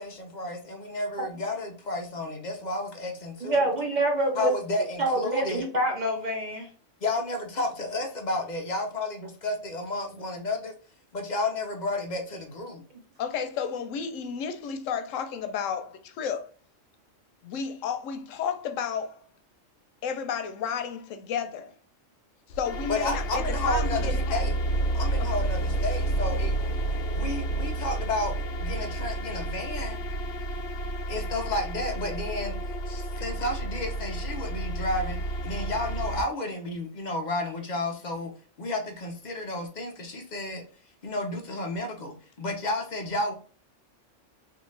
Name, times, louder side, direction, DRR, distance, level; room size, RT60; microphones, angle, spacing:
voice 1, 0.0-3.7 4.4-5.6 7.0-10.7 11.1-12.8 22.9-24.5 24.9-26.5 27.1-28.3 28.6-30.0 31.1-32.6 32.9-38.3 38.6-40.6 41.0-43.3, left 2 dB, 50° left, 0.6 m, -32 dB
voice 2, 3.4-4.5 5.0-6.7, right 1 dB, 45° right, 0.6 m, -26 dB
voice 3, 13.2-16.4 17.4-19.3 20.0-21.8 22.5-24.4 25.2-25.3, left 7 dB, 90° left, 1.0 m, -32 dB
sound 1, 22.5-36.2, right 1 dB, 65° left, 1.1 m, -30 dB
3.4 x 2.5 x 3.1 m
omnidirectional pair, 1.3 m